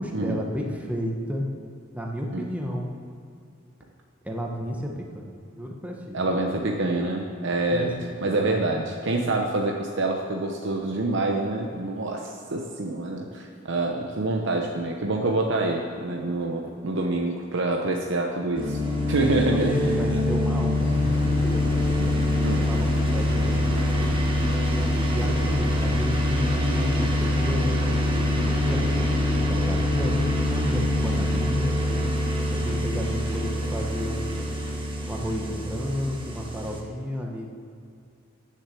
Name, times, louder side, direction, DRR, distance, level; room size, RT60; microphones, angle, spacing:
voice 1, 0.0-1.4 1.9-2.9 4.2-6.2 7.7-7.9 8.3-8.6 19.4-24.5 25.1-32.0 32.5-34.6 35.1-37.6, equal, 5° right, 0 dB, 1.0 m, -32 dB
voice 2, 6.1-7.9 8.2-18.8 19.1-20.0 22.0-22.1 22.4-22.6, right 2 dB, 65° right, 2 dB, 0.9 m, -26 dB
sound 1, 18.5-36.8, left 1 dB, 25° right, 1.6 m, -24 dB
Engine, 20.7-32.4, left 1 dB, 70° left, 2.0 m, -40 dB
10.5 x 6.8 x 7.5 m, 2.5 s
head